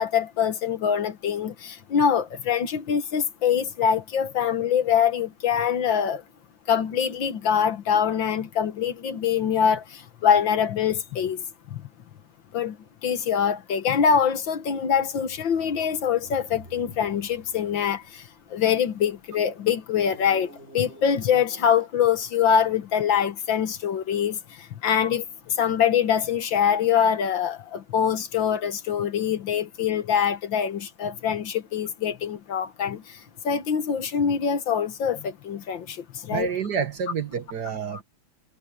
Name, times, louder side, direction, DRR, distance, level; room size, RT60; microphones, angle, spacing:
voice 1, 0.0-6.2 6.7-9.8 10.2-11.4 11.7-11.8 12.5-12.8 13.0-18.2 18.5-20.5 20.7-24.4 24.8-25.2 25.6-33.0 33.5-36.0 36.2-36.5, left 8 dB, 65° left, 1.9 m, -24 dB
sound 1, 14.5-19.2 19.9-22.4 23.1-23.3, right 1 dB, 30° right, 8.1 m, -50 dB
voice 2, 36.3-38.0, right 6 dB, 55° right, 1.8 m, -28 dB
omnidirectional pair, 2.3 m